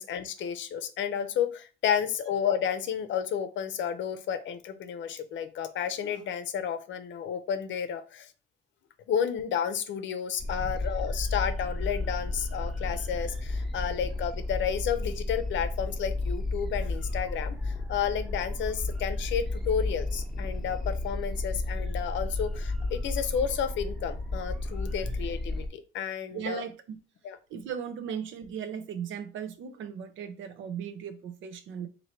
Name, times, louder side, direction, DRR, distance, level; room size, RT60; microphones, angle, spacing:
voice 1, 0.0-8.3 9.1-26.6 27.2-27.4, left 8 dB, 70° left, 10 dB, 0.6 m, -31 dB
sound 1, 10.4-25.7, left 2 dB, ahead, 0.8 m, -32 dB
voice 2, 26.3-27.0 27.5-31.9, right 8 dB, 80° right, 9 dB, 0.6 m, -37 dB
3.0 x 2.7 x 4.4 m, 0.34 s
cardioid pair, 90°, 20 cm